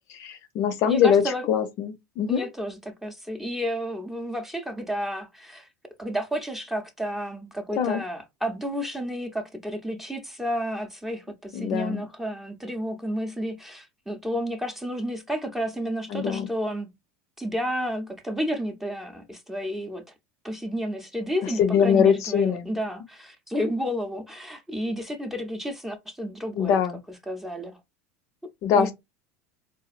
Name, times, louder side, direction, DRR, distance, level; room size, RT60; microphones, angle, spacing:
voice 1, 0.1-1.2 1.5-2.5 7.8-8.0 11.5-12.0 16.1-16.5 21.6-22.7 26.6-27.0 28.6-28.9, left 8 dB, 55° left, 0.6 m, -22 dB
voice 2, 0.9-1.5 2.3-5.7 6.0-16.9 17.4-20.0 20.4-26.8 27.3-27.8 28.7-28.9, equal, 5° right, 0.6 m, -31 dB
3.9 x 2.3 x 2.4 m
supercardioid pair, 110°, 7 cm